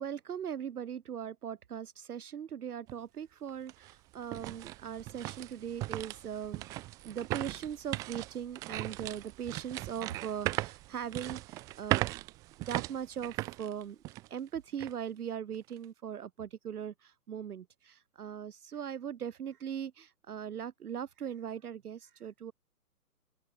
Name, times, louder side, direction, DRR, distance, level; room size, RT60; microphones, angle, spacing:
voice 1, 0.0-12.0 12.6-14.0 14.3-22.5, right 8 dB, 75° right, 1.0 m, -40 dB
sound 1, 2.9-3.0 3.5-14.4 14.8-14.9 15.5-15.8, right 19 dB, 10° right, 0.5 m, -38 dB
open air
figure-of-eight pair, 135°, 46 cm